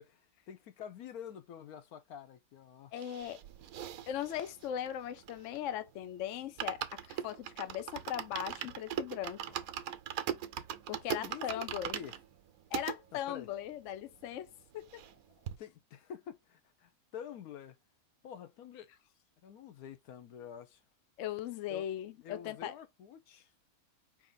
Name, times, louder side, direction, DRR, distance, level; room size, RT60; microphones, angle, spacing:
voice 1, 0.0-2.9 11.1-11.7 11.9-12.1 13.1-13.5 15.6-17.8 18.2-18.9 19.4-20.8 21.7-21.9 22.2-23.5, left 8 dB, 85° left, 1.2 m, -48 dB
voice 2, 2.9-3.4 4.1-9.6 10.9-12.0 12.7-15.0 21.2-22.7, left 11 dB, 65° left, 0.9 m, -39 dB
sound 1, 3.0-5.7 6.1-6.2 6.4-13.0 13.5-13.6 13.8-13.9 14.2-15.2 15.5-15.6, right 10 dB, 75° right, 1.1 m, -40 dB
4.8 x 2.8 x 3.9 m
omnidirectional pair, 1.5 m